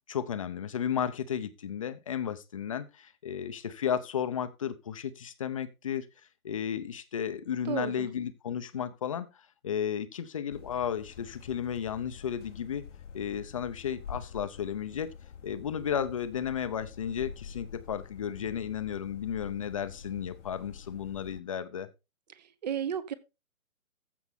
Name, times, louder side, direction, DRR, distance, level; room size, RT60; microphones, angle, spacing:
voice 1, 0.1-6.1 6.4-9.3 9.6-12.8 13.1-15.1 15.4-21.9, left 8 dB, 25° left, 0.6 m, -33 dB
voice 2, 7.6-8.1 22.3-23.1, right 8 dB, 30° right, 0.9 m, -34 dB
sound 1, 10.5-21.4, left 7 dB, 55° left, 0.8 m, -47 dB
14.5 x 5.5 x 3.6 m
hypercardioid pair, 155°, 42 cm